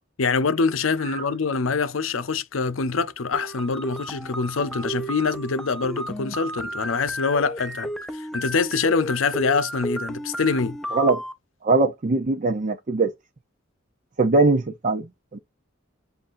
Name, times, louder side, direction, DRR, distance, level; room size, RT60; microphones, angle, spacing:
voice 1, 0.2-10.8, left 4 dB, 80° left, 0.7 m, -25 dB
sound 1, 3.3-11.3, equal, ahead, 0.5 m, -33 dB
voice 2, 10.9-11.2 11.6-13.1 14.2-15.4, right 3 dB, 40° right, 0.6 m, -21 dB
7.7 x 2.6 x 2.5 m
head